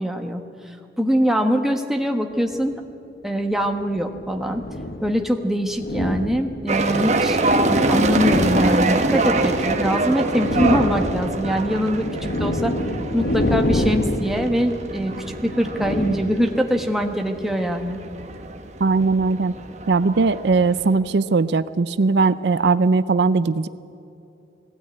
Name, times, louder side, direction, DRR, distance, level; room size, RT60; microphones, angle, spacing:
voice 1, 0.0-2.8 3.2-4.6 5.0-12.1 12.4-12.7 13.1-15.1 15.4-18.0, equal, ahead, 3 dB, 1.2 m, -23 dB
sound 1, 2.5-2.6 3.6-5.1 5.7-6.9 7.5-9.9 10.2-16.8, left 1 dB, 55° left, 1.4 m, -27 dB
sound 2, 6.7-21.0, right 2 dB, 40° right, 1.3 m, -25 dB
voice 2, 18.8-19.5 19.9-23.7, right 4 dB, 65° right, 14 dB, 0.5 m, -19 dB
19.5 x 16.5 x 9.7 m, 2.8 s
head